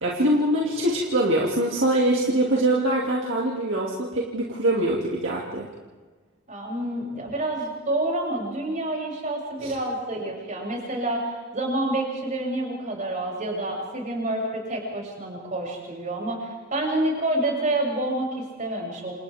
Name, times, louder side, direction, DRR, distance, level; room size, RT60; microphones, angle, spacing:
voice 1, 0.0-5.7 9.6-9.7, right 1 dB, 65° right, -3 dB, 2.6 m, -23 dB
voice 2, 6.5-19.1, right 1 dB, 40° right, -2 dB, 7.7 m, -28 dB
28.5 x 28.5 x 3.6 m, 1.4 s
head